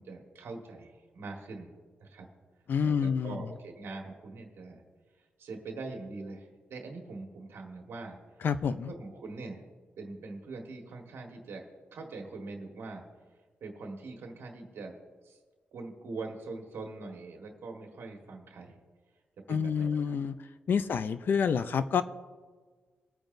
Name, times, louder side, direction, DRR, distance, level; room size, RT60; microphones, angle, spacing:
voice 1, 0.0-1.7 2.0-2.3 2.8-4.8 5.2-9.7 10.0-11.6 11.9-13.0 13.6-15.0 15.2-15.4 15.7-18.8 19.5-20.1 20.7-21.0, right 3 dB, 80° right, 1 dB, 1.5 m, -43 dB
voice 2, 2.7-3.4 8.4-8.9 19.5-20.3 20.7-22.0, left 6 dB, 55° left, 12 dB, 0.5 m, -28 dB
24.0 x 8.9 x 2.7 m, 1.4 s
wide cardioid pair, 175°, 4 cm